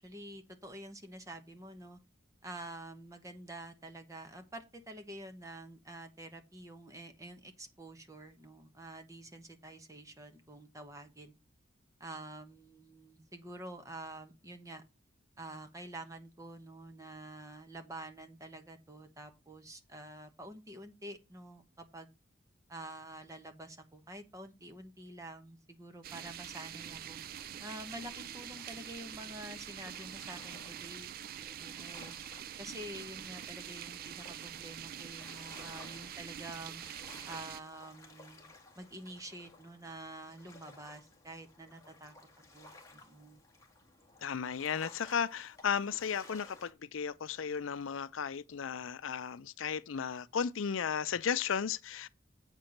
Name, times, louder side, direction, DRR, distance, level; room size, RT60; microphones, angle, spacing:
voice 1, 0.0-2.0 2.4-11.3 12.0-14.8 15.4-22.1 22.7-27.2 27.6-31.2 31.6-32.1 32.6-36.8 37.2-38.5 38.8-42.2 42.5-43.4, right 1 dB, 15° right, 1.1 m, -48 dB
sound 1, 26.0-37.6, right 10 dB, 45° right, 0.3 m, -45 dB
sound 2, 27.4-46.7, left 3 dB, 15° left, 1.7 m, -57 dB
voice 2, 44.2-52.1, left 7 dB, 75° left, 0.5 m, -35 dB
8.2 x 4.5 x 6.4 m
head